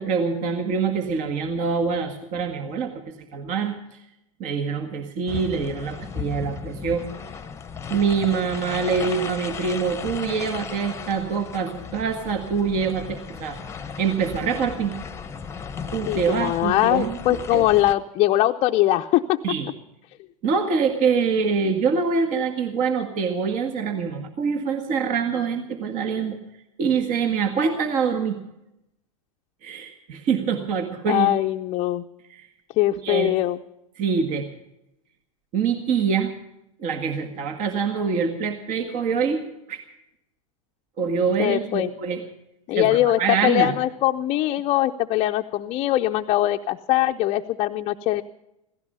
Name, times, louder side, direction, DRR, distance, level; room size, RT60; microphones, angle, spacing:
voice 1, 0.0-2.9 3.3-3.7 4.4-7.1 7.9-13.6 14.0-15.0 15.9-17.7 19.4-19.7 20.4-26.4 26.8-28.4 29.6-31.3 32.3-32.5 33.0-33.3 34.0-34.5 35.5-36.3 36.8-39.8 41.0-42.2 42.7-43.8, right 5 dB, 45° right, 5 dB, 1.8 m, -25 dB
sound 1, 5.3-17.9, left 6 dB, 15° left, 1.0 m, -36 dB
voice 2, 16.1-19.4 31.1-32.0 32.8-33.6 41.4-41.9 42.7-48.2, left 15 dB, 35° left, 3 dB, 0.6 m, -22 dB
16.5 x 15.5 x 5.4 m, 0.86 s
hypercardioid pair, 100°, 18 cm